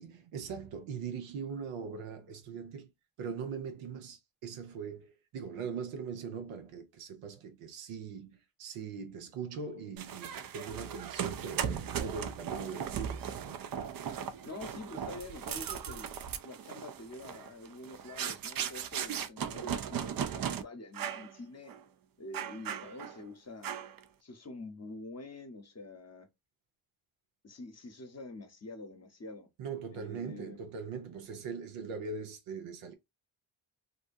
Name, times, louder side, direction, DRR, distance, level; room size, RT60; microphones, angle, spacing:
voice 1, 0.0-2.9 3.2-13.7 29.6-32.9, right 6 dB, 85° right, 0.7 m, -41 dB
sound 1, 10.0-20.6 20.9-21.3 21.7-21.8 22.3-23.2 23.6-24.0, right 8 dB, 45° right, 0.5 m, -37 dB
voice 2, 14.5-16.1 16.4-21.7 22.2-23.7 24.2-26.3 27.4-29.5 29.9-30.6, left 2 dB, 30° left, 0.9 m, -46 dB
2.7 x 2.2 x 2.6 m
supercardioid pair, 45°, 50 cm